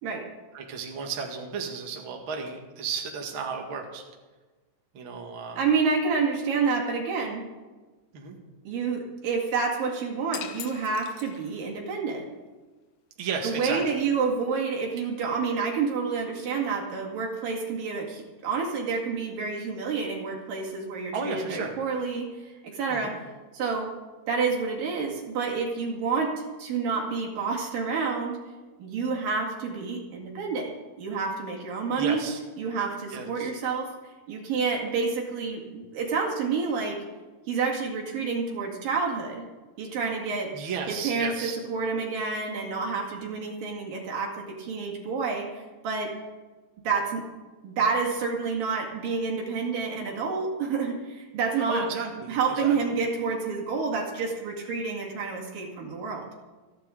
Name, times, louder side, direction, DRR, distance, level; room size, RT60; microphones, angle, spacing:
voice 1, 0.5-4.0 4.9-5.7 8.1-8.4 13.2-13.8 21.1-21.8 22.9-23.1 32.0-32.4 33.1-33.5 40.5-41.6 51.7-53.0, right 5 dB, 45° right, 1 dB, 2.2 m, -34 dB
voice 2, 5.6-7.5 8.7-12.3 13.4-23.3 23.5-23.9 24.3-28.4 28.8-30.7 31.0-32.2 32.6-33.9 34.3-37.0 37.5-39.4 39.8-40.6 40.9-46.1 46.8-47.3 47.6-51.9 52.3-56.3, right 5 dB, 75° right, -1 dB, 3.9 m, -29 dB
sound 1, 10.3-11.8, left 12 dB, 75° left, 2.2 m, -41 dB
28.5 x 10.0 x 3.8 m, 1.3 s
omnidirectional pair, 4.0 m